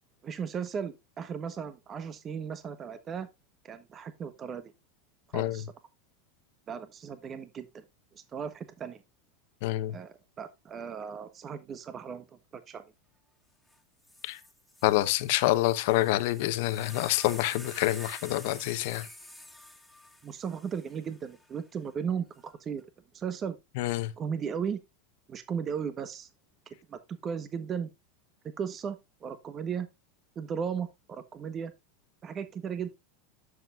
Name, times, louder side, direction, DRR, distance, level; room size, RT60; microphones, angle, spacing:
voice 1, 0.2-3.3 3.6-4.7 5.3-5.7 6.7-7.8 8.1-9.0 9.9-12.2 12.5-12.8 20.2-22.8 23.1-23.6 24.2-24.8 25.3-26.3 26.9-27.9 28.6-29.9 30.3-31.7 32.2-32.9, right 7 dB, 30° right, 1.1 m, -36 dB
voice 2, 9.6-9.9 14.2-14.4 14.8-19.1 23.8-24.1, left 16 dB, 65° left, 1.0 m, -27 dB
sound 1, 13.7-13.8 14.0-21.4 22.3-22.8, left 1 dB, ahead, 2.5 m, -48 dB
11.0 x 7.5 x 2.5 m
hypercardioid pair, 95°, 0 cm